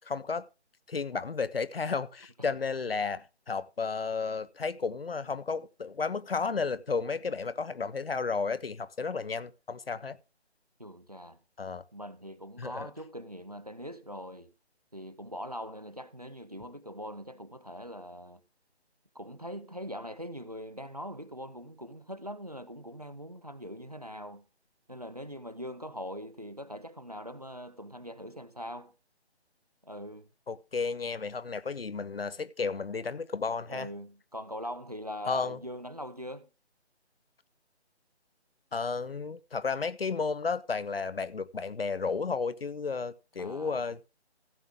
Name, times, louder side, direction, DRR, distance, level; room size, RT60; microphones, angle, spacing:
voice 1, 0.1-0.5 0.9-10.2 11.6-11.8 12.6-12.9 30.5-33.9 35.3-35.6 38.7-44.0, left 4 dB, 60° left, 0.7 m, -33 dB
voice 2, 10.8-11.4 11.9-14.5 14.9-18.4 19.1-24.4 24.9-28.9 29.8-30.3 31.5-31.6 33.7-36.5 43.4-43.9, equal, 35° right, 0.5 m, -42 dB
15.5 x 7.2 x 3.5 m
figure-of-eight pair, 180°, 34 cm